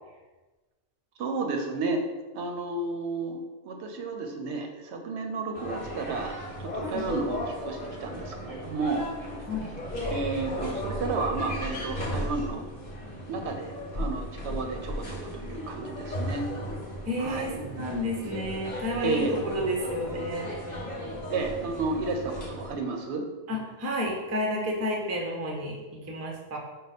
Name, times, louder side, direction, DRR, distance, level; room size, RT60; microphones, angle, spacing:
voice 1, 1.2-2.0 2.3-9.1 10.1-12.6 13.3-16.5 17.2-17.6 19.0-19.4 21.3-23.2, right 3 dB, 75° right, 3 dB, 0.8 m, -32 dB
sound 1, 5.5-22.7, equal, 40° left, 0.9 m, -36 dB
voice 2, 17.1-20.5 23.5-26.6, left 1 dB, 20° right, -1 dB, 0.4 m, -31 dB
5.0 x 2.2 x 4.1 m, 1.2 s
omnidirectional pair, 1.2 m